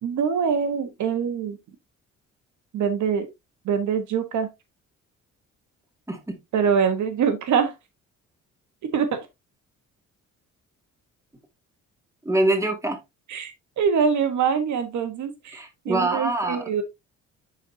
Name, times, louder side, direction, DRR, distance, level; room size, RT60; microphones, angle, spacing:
voice 1, 0.0-1.6 2.7-3.3 3.6-4.5 6.5-7.7 8.9-9.2 13.3-16.8, right 6 dB, 70° right, 1.3 m, -24 dB
voice 2, 6.1-6.4 12.2-13.0 15.5-16.7, right 2 dB, 10° right, 2.3 m, -24 dB
10.5 x 4.2 x 2.7 m
cardioid pair, 90°, 30 cm